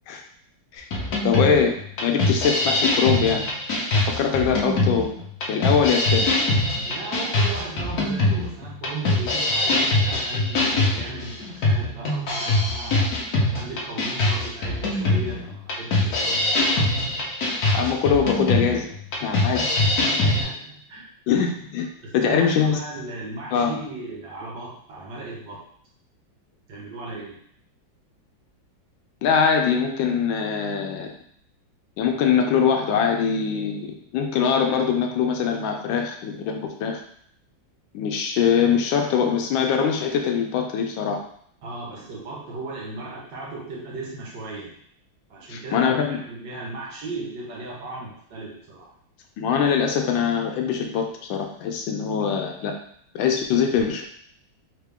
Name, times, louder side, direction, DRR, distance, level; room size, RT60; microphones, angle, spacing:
sound 1, 0.9-20.4, left 2 dB, 60° left, 1.2 m, -23 dB
voice 1, 1.2-1.7 2.0-3.5 3.9-5.1 5.5-6.3 17.7-18.9 19.2-19.7 21.3-21.9 22.1-22.8 23.5-23.8 29.2-31.1 32.0-37.0 37.9-41.2 45.5-46.2 49.4-52.7 53.1-54.0, left 7 dB, 80° left, 3 dB, 1.3 m, -22 dB
voice 2, 6.8-13.1 13.5-16.8 19.6-21.0 22.0-25.6 26.7-27.4 41.6-44.7 45.3-48.9, right 2 dB, 65° right, -3 dB, 1.7 m, -36 dB
3.8 x 2.9 x 3.4 m, 0.63 s
omnidirectional pair, 2.1 m